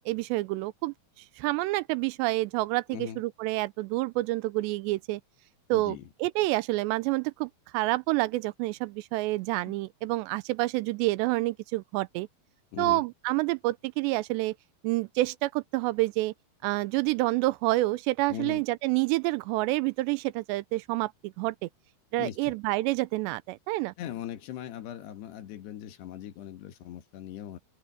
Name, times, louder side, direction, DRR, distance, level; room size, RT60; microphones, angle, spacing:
voice 1, 0.1-0.9 1.4-5.2 5.7-12.3 12.8-14.5 14.8-16.3 16.6-21.7 22.1-23.9, right 20 dB, 90° right, 2.8 m, -28 dB
voice 2, 2.9-3.2 5.7-6.1 9.7-9.8 12.7-13.0 18.3-18.6 22.2-22.6 24.0-27.6, left 11 dB, 75° left, 3.6 m, -40 dB
open air
omnidirectional pair, 4.9 m